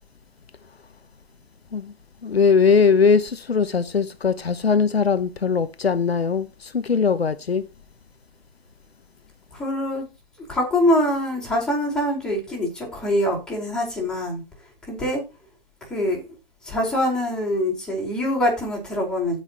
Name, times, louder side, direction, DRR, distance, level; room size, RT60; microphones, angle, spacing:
voice 1, 2.2-7.6, left 5 dB, 80° left, 0.9 m, -20 dB
voice 2, 9.5-10.0 10.5-14.4 14.9-15.2 15.9-16.2 16.6-19.4, left 1 dB, ahead, 5.0 m, -24 dB
16.5 x 5.8 x 3.1 m
figure-of-eight pair, 130°, 31 cm